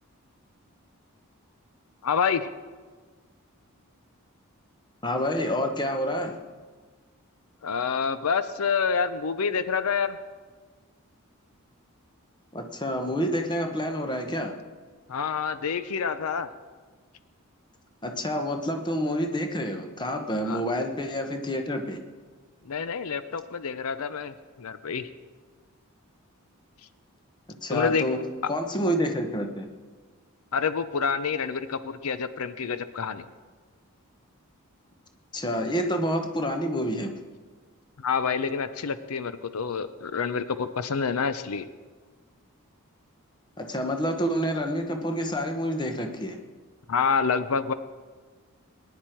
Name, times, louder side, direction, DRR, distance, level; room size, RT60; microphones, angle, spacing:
voice 1, 2.0-2.5 7.6-10.2 15.1-16.5 20.5-20.6 22.7-25.1 27.7-28.1 28.4-28.5 30.5-33.3 38.0-41.7 46.9-47.7, left 6 dB, 75° left, 13 dB, 0.6 m, -27 dB
voice 2, 5.0-6.4 12.5-14.6 18.0-22.0 27.6-29.7 35.3-37.1 43.6-46.4, equal, 20° left, 5 dB, 1.0 m, -28 dB
19.0 x 10.5 x 4.5 m, 1.4 s
head